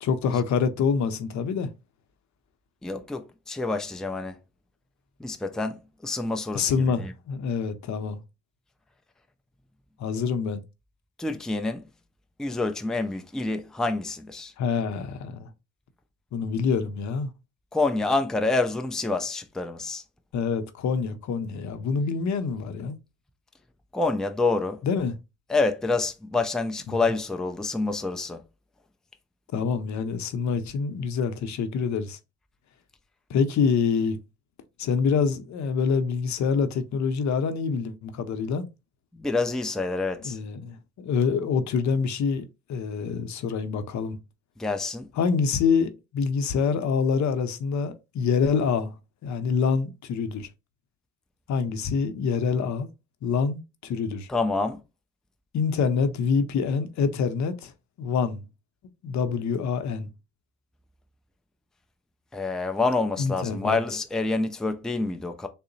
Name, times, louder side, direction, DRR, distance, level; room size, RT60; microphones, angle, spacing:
voice 1, 0.0-1.7 6.5-8.2 10.0-10.6 14.6-15.5 16.3-17.3 20.3-23.0 24.8-25.2 26.9-27.0 29.5-32.2 33.3-34.2 34.8-38.7 40.2-44.2 45.2-48.9 49.2-50.5 51.5-52.9 53.2-54.3 55.5-57.7 58.0-58.5 59.0-60.1 63.2-63.8, left 5 dB, 65° left, 0.7 m, -26 dB
voice 2, 2.8-4.4 5.2-6.7 7.0-7.1 11.2-11.9 12.4-14.5 17.7-20.0 23.9-24.8 25.5-28.4 39.2-40.4 44.6-45.1 54.3-54.8 62.3-65.5, left 3 dB, ahead, 0.4 m, -27 dB
3.7 x 2.1 x 3.9 m
cardioid pair, 90°, 30 cm